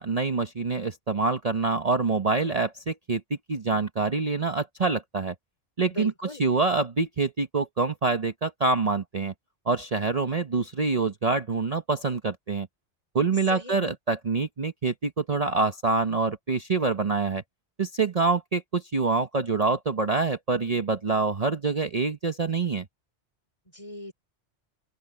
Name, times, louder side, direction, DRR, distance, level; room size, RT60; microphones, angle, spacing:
voice 1, 0.0-5.3 5.8-6.1 6.4-9.3 9.7-12.7 13.1-17.4 17.8-22.8, right 4 dB, 35° right, 1.0 m, -26 dB
voice 2, 5.9-6.4 13.5-13.9 23.7-24.1, left 1 dB, 30° left, 4.8 m, -38 dB
open air
omnidirectional pair, 1.2 m